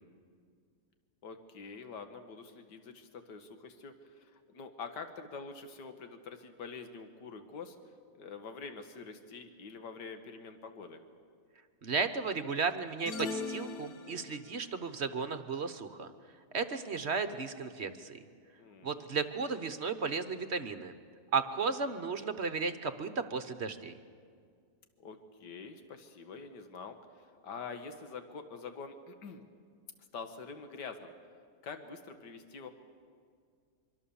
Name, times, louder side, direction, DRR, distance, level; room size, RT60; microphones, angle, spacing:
voice 1, 1.2-7.8 8.1-11.0 18.6-19.0 25.0-29.4 30.1-31.1 31.6-32.7, left 5 dB, 80° left, 7 dB, 2.0 m, -46 dB
voice 2, 11.8-16.1 16.5-18.2 18.8-20.9 21.3-23.9, right 5 dB, 45° right, 10 dB, 1.2 m, -34 dB
sound 1, 13.1-14.6, left 4 dB, 65° left, 1.4 m, -39 dB
24.5 x 24.5 x 7.1 m, 2.1 s
omnidirectional pair, 1.8 m